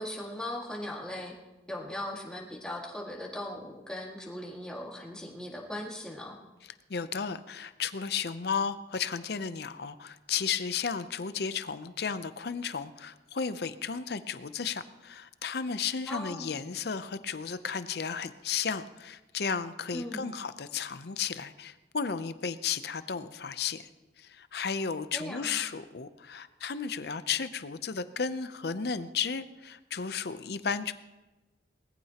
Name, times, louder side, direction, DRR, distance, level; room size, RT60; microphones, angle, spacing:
voice 1, 0.0-1.3 1.7-6.4 16.1-16.5 19.9-20.3 25.1-25.6, left 1 dB, 5° left, -3 dB, 1.9 m, -38 dB
voice 2, 6.9-23.9 24.2-30.9, left 6 dB, 60° left, 13 dB, 0.6 m, -34 dB
20.0 x 14.5 x 2.9 m, 1.1 s
head